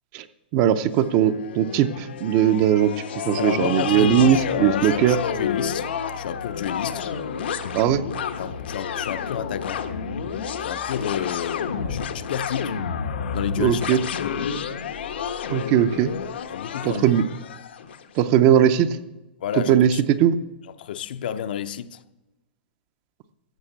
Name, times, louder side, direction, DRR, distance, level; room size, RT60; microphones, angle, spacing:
voice 1, 0.5-2.9 3.3-5.2 7.7-8.0 13.6-14.0 15.5-16.1 16.8-17.3 18.2-18.9 19.7-19.9 20.2-20.4, right 10 dB, 30° right, 0.6 m, -19 dB
sound 1, 1.0-18.0, left 7 dB, 85° left, 1.2 m, -30 dB
voice 2, 3.4-5.9 6.1-7.0 8.4-9.9 10.6-12.8 13.3-14.5 16.5-17.0 19.4-20.0 20.8-22.0, left 9 dB, 60° left, 0.7 m, -30 dB
14.5 x 6.5 x 8.0 m
supercardioid pair, 170°, 6 cm